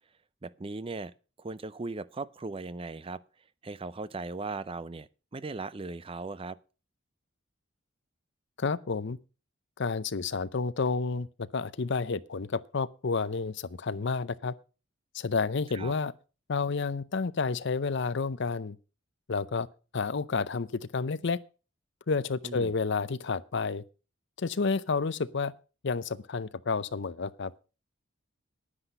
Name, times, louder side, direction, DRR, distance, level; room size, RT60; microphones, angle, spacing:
voice 1, 0.4-1.1 1.4-3.2 3.6-6.6 15.7-15.9 22.4-22.7, right 3 dB, 25° right, 0.5 m, -38 dB
voice 2, 8.6-9.2 9.8-14.5 15.1-16.1 16.5-18.8 19.3-19.7 19.9-21.4 22.1-23.8 24.4-25.5 25.8-27.5, left 4 dB, 55° left, 0.6 m, -30 dB
10.0 x 9.9 x 5.4 m
head